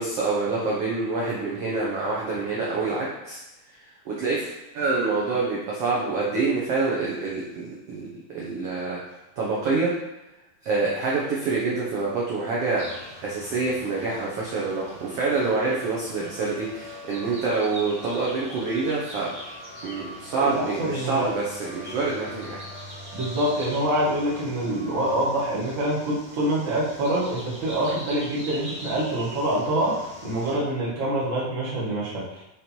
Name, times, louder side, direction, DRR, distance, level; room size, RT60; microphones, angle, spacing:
voice 1, 0.0-3.4 4.0-4.5 4.7-8.1 8.3-9.0 9.4-9.9 10.6-12.9 13.2-19.3 19.8-22.6, right 3 dB, 75° right, -5 dB, 1.4 m, -26 dB
sound 1, 12.8-30.5, equal, 15° right, 1.1 m, -41 dB
voice 2, 20.4-21.3 23.1-32.4, right 1 dB, 40° right, -6 dB, 1.1 m, -26 dB
5.7 x 5.0 x 4.4 m, 0.95 s
omnidirectional pair, 4.2 m